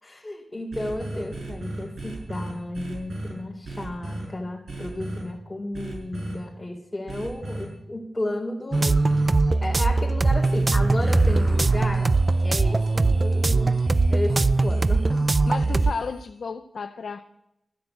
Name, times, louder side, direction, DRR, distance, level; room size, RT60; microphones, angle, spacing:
voice 1, 0.0-9.0 9.6-12.2 12.4-13.8 14.1-15.3, left 1 dB, 20° left, -4 dB, 3.6 m, -33 dB
sound 1, 0.7-3.3 3.6-4.2 4.7-5.2 5.7-6.4 7.1-7.6 8.7-9.3 10.4-16.3, right 2 dB, 60° right, 5.9 m, -35 dB
sound 2, 8.7-15.9, right 3 dB, 40° right, 0.5 m, -21 dB
voice 2, 15.4-17.2, left 5 dB, 70° left, 7 dB, 0.7 m, -33 dB
15.0 x 10.5 x 8.1 m, 0.83 s
cardioid pair, 65°, 0 cm